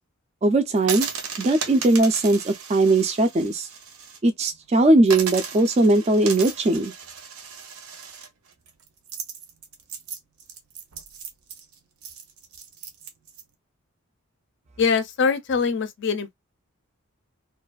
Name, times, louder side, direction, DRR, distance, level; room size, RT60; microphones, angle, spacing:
voice 1, 0.4-1.1 1.4-3.7 4.2-6.9, right 2 dB, 30° right, 0.3 m, -19 dB
sound 1, 0.8-4.2 4.5-4.6 5.0-13.4, right 6 dB, 75° right, 0.6 m, -36 dB
voice 2, 14.8-16.3, left 5 dB, 55° left, 0.5 m, -23 dB
2.4 x 2.3 x 2.2 m
head